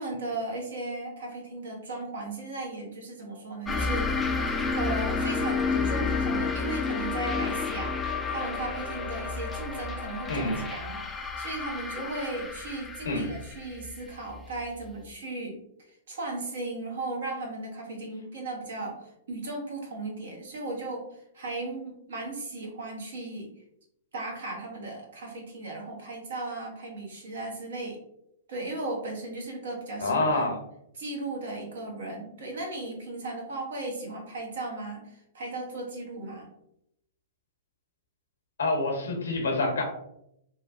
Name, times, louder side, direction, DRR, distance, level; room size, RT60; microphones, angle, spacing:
voice 1, 0.0-4.1 4.8-15.6 16.1-23.5 24.1-28.0 28.5-30.5 30.9-36.5, right 2 dB, 70° right, 0 dB, 1.0 m, -36 dB
sound 1, 3.7-14.9, left 4 dB, 15° left, 0.3 m, -31 dB
voice 2, 30.0-30.6 38.6-39.8, left 2 dB, 80° left, 2 dB, 0.8 m, -27 dB
3.1 x 2.3 x 2.5 m, 0.78 s
hypercardioid pair, 115°, 0 cm